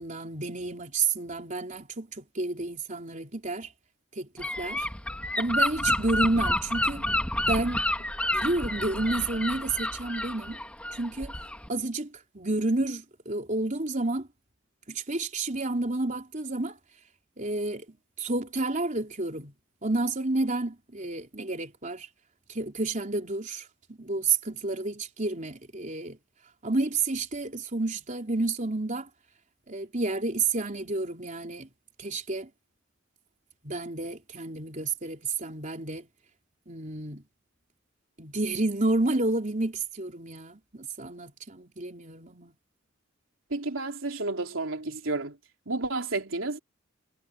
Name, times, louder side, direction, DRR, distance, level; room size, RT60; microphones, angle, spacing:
voice 1, 0.0-3.7 4.1-4.9 5.4-7.1 7.5-7.9 8.3-10.6 10.9-11.3 11.7-14.3 14.9-16.8 17.4-19.5 19.8-22.1 22.5-26.2 26.6-29.1 29.7-31.7 32.0-32.5 33.6-36.1 36.7-37.2 38.2-42.5, right 2 dB, 40° right, 3.8 m, -30 dB
Gull seagull / Wind, 4.4-11.7, left 1 dB, 5° left, 2.1 m, -29 dB
voice 2, 43.5-45.4 45.7-46.6, right 2 dB, 85° right, 3.3 m, -31 dB
head